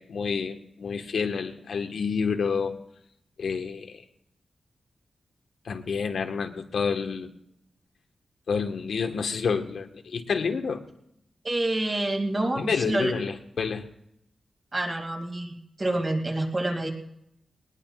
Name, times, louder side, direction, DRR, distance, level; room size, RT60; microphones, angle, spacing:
voice 1, 0.0-2.8 3.4-4.0 5.6-7.3 8.5-10.8 12.6-13.8, left 5 dB, 85° left, 5 dB, 1.3 m, -29 dB
voice 2, 11.4-13.1 14.7-16.9, right 1 dB, 30° right, 2 dB, 2.3 m, -27 dB
21.0 x 19.5 x 2.4 m, 0.75 s
wide cardioid pair, 130°, 0 cm